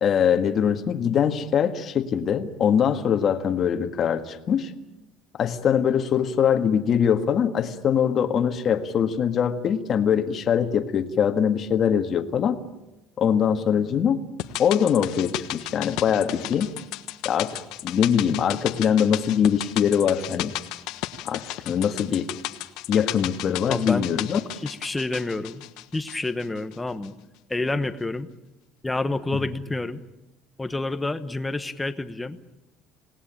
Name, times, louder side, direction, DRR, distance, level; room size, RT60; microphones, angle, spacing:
voice 1, 0.0-4.7 5.4-12.6 13.2-14.2 14.6-16.7 17.3-20.5 21.3-22.3 22.9-24.4, left 8 dB, 40° left, 6 dB, 1.7 m, -22 dB
sound 1, 14.4-26.8 27.0-27.1, left 16 dB, 75° left, 1.2 m, -34 dB
voice 2, 23.7-24.1 24.6-25.6 25.9-27.1 27.5-28.3 28.8-30.0 30.6-32.4, left 2 dB, 10° left, 10 dB, 1.1 m, -28 dB
27.0 x 18.5 x 8.9 m, 0.98 s
cardioid pair, 145°, 0 cm